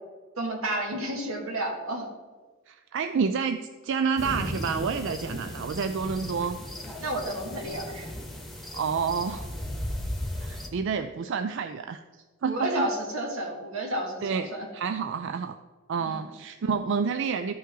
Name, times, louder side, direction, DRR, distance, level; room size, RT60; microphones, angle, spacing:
voice 1, 0.4-2.1 5.3-5.4 7.0-8.1 12.4-14.7 16.0-16.2, right 1 dB, 85° right, 0 dB, 2.1 m, -31 dB
voice 2, 2.7-6.6 8.7-9.5 10.4-12.0 12.4-12.9 14.2-14.5 14.7-15.6 15.9-17.6, right 6 dB, 60° right, 8 dB, 0.4 m, -29 dB
sound 1, 4.2-10.7, left 1 dB, ahead, 1.1 m, -36 dB
13.5 x 5.6 x 3.8 m, 1.4 s
head